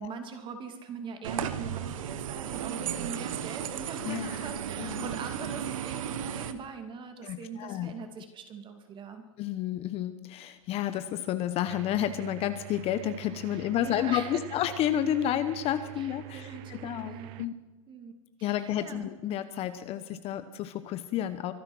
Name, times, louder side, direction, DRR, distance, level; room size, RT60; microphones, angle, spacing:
voice 1, 0.0-9.2 13.8-14.4 16.0-16.1 16.3-17.5 17.9-18.1 18.4-19.0, right 5 dB, 25° right, 6 dB, 2.6 m, -41 dB
sound 1, 1.2-6.5, right 9 dB, 70° right, 1.3 m, -35 dB
voice 2, 4.0-4.5 4.8-5.1 7.2-7.9 9.4-17.5 18.4-21.5, left 11 dB, 35° left, 11 dB, 1.0 m, -31 dB
sound 2, 11.7-17.5, right 16 dB, 45° right, 0.9 m, -46 dB
24.5 x 8.9 x 6.2 m, 1.2 s
hypercardioid pair, 120°, 18 cm